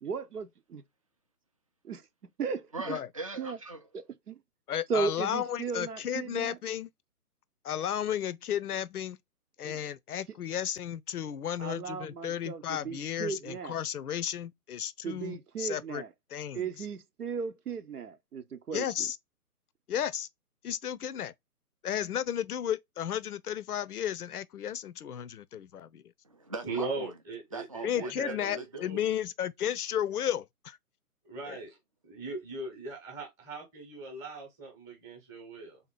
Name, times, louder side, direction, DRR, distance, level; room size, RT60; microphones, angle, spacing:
voice 1, 0.0-0.8 1.8-2.0 2.4-2.7 3.4-3.6 4.3-4.4 4.9-6.6 9.6-9.7 11.6-13.8 15.0-16.1 16.5-18.8, right 5 dB, 75° right, 0.8 m, -36 dB
voice 2, 2.7-3.9 26.2-27.1 27.5-28.7, right 3 dB, 25° right, 0.5 m, -40 dB
voice 3, 4.7-6.9 7.6-9.2 9.6-16.0 16.3-16.9 18.7-19.2 19.9-20.3 20.6-21.3 21.8-26.0 27.8-30.8 31.5-31.6, left 10 dB, 75° left, 0.6 m, -33 dB
voice 4, 26.6-29.0 31.2-31.8 32.0-35.8, right 3 dB, 5° right, 0.9 m, -39 dB
3.6 x 2.8 x 3.6 m
figure-of-eight pair, 140°, 46 cm